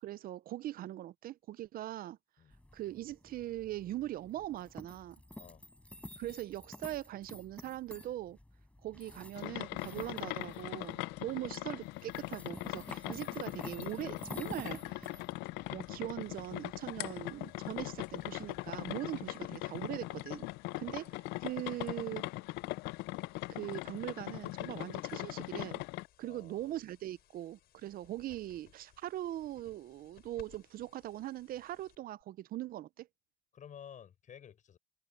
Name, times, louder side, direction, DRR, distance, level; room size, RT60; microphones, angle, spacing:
voice 1, 0.0-2.2 2.7-5.2 6.2-8.4 8.8-15.2 15.7-20.5 20.8-22.3 23.5-25.8 26.2-33.1, right 14 dB, 60° right, 0.5 m, -41 dB
sound 1, 2.5-18.9, left 1 dB, 5° left, 5.6 m, -51 dB
sound 2, 9.4-26.1, left 21 dB, 90° left, 0.4 m, -40 dB
sound 3, 16.2-32.2, left 12 dB, 65° left, 5.8 m, -66 dB
voice 2, 26.2-26.8 33.5-34.8, left 8 dB, 50° left, 6.3 m, -53 dB
cardioid pair, 110°, 17 cm